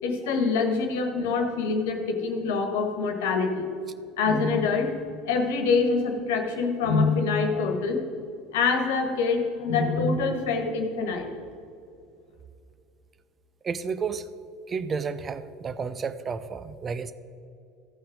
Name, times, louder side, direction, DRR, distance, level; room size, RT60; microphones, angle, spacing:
voice 1, 0.0-3.7 4.2-4.9 5.2-8.0 8.5-11.3, left 4 dB, 65° left, 4 dB, 1.4 m, -25 dB
voice 2, 13.6-14.3 14.7-17.1, right 5 dB, 30° right, 14 dB, 0.6 m, -31 dB
14.5 x 5.7 x 5.1 m, 2.5 s
figure-of-eight pair, 70°, 0 cm